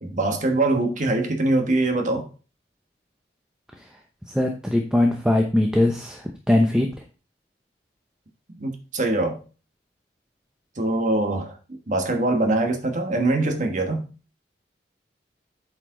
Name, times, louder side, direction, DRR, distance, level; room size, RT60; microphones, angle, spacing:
voice 1, 0.0-2.3 8.6-9.4 10.8-14.1, right 2 dB, 45° right, 1.3 m, -23 dB
voice 2, 4.3-6.2 6.5-6.9, left 1 dB, 5° right, 0.7 m, -20 dB
8.4 x 4.9 x 3.8 m
head